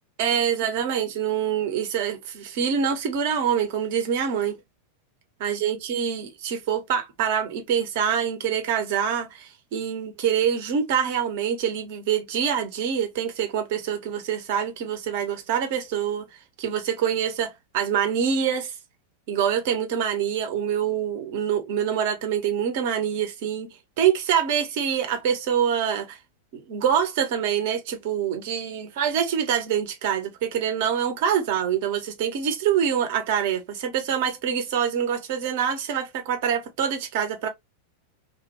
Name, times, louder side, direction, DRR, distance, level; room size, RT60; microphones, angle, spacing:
voice 1, 0.2-4.6 5.4-16.3 16.6-18.7 19.3-23.7 24.0-26.2 26.5-37.5, right 8 dB, 50° right, 0.7 m, -25 dB
2.2 x 2.1 x 2.8 m
figure-of-eight pair, 90°, 0 cm